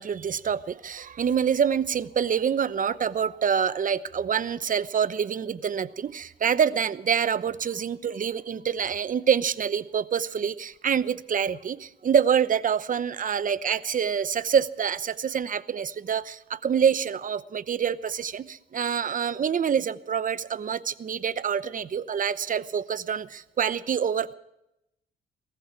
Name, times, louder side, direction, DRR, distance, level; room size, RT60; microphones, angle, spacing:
voice 1, 0.0-24.3, right 7 dB, 45° right, 15 dB, 0.9 m, -26 dB
18.0 x 15.0 x 4.6 m, 0.85 s
cardioid pair, 90°, 20 cm